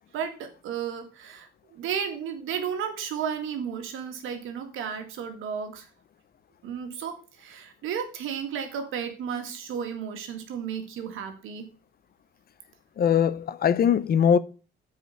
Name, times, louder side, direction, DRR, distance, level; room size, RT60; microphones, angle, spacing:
voice 1, 0.1-5.9 6.6-11.7, right 7 dB, 85° right, 1.9 m, -33 dB
voice 2, 13.0-14.4, left 8 dB, 50° left, 0.6 m, -21 dB
8.0 x 4.9 x 6.4 m
cardioid pair, 90°, 20 cm